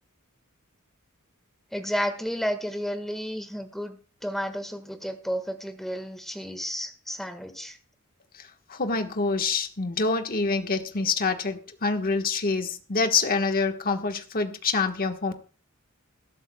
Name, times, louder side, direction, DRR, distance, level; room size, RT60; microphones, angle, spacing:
voice 1, 1.7-7.8, equal, ahead, 7 dB, 1.5 m, -32 dB
voice 2, 8.7-15.3, left 4 dB, 40° left, 6 dB, 1.3 m, -26 dB
21.5 x 12.5 x 2.3 m, 0.37 s
head